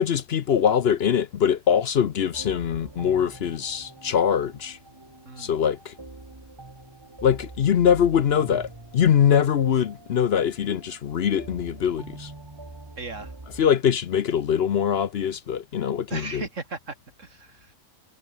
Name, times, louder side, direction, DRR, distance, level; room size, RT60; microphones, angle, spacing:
voice 1, 0.0-4.8 5.4-5.9 7.2-12.3 13.6-16.4, left 8 dB, 55° left, 0.9 m, -23 dB
sound 1, 2.3-13.7, right 2 dB, 20° right, 1.6 m, -44 dB
voice 2, 13.0-13.3 16.1-17.7, right 3 dB, 65° right, 2.9 m, -36 dB
omnidirectional pair, 1.4 m